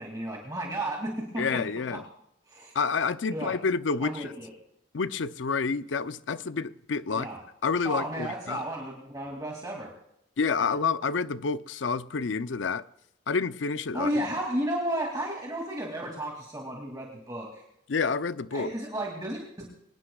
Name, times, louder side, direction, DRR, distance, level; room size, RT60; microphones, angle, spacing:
voice 1, 0.0-1.6 2.5-2.7 3.3-3.5 4.0-4.5 7.1-7.4 7.8-9.9 10.6-10.7 13.9-17.6 18.5-19.7, right 1 dB, 20° right, 2.5 m, -33 dB
voice 2, 1.4-2.0 2.7-4.3 4.9-7.3 7.6-8.6 10.4-12.8 13.3-14.1 17.9-18.7, left 5 dB, 75° left, 0.6 m, -29 dB
24.0 x 19.5 x 2.3 m
head